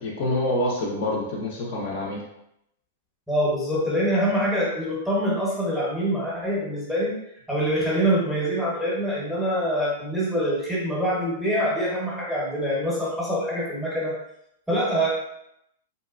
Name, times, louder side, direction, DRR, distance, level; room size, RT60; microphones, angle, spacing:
voice 1, 0.0-2.2, left 1 dB, 40° left, -2 dB, 0.5 m, -26 dB
voice 2, 3.3-7.1 7.5-14.1 14.7-15.1, equal, ahead, -7 dB, 0.7 m, -25 dB
3.0 x 2.6 x 2.4 m, 0.80 s
supercardioid pair, 170°, 0 cm